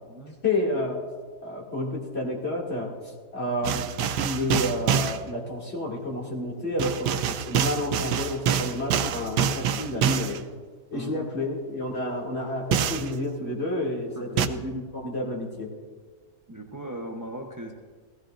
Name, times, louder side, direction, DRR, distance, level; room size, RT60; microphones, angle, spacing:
voice 1, 0.4-1.0 1.4-2.9 3.3-3.9 4.2-10.4 10.9-15.7, left 1 dB, 40° left, -4 dB, 2.7 m, -30 dB
sound 1, 3.6-5.2 6.8-10.4 12.7-13.1 14.4-14.5, right 8 dB, 90° right, 1.2 m, -25 dB
voice 2, 10.9-11.3 14.1-14.4 16.5-17.7, right 1 dB, 20° right, 1 dB, 0.6 m, -38 dB
17.0 x 15.5 x 2.6 m, 1.5 s
omnidirectional pair, 1.7 m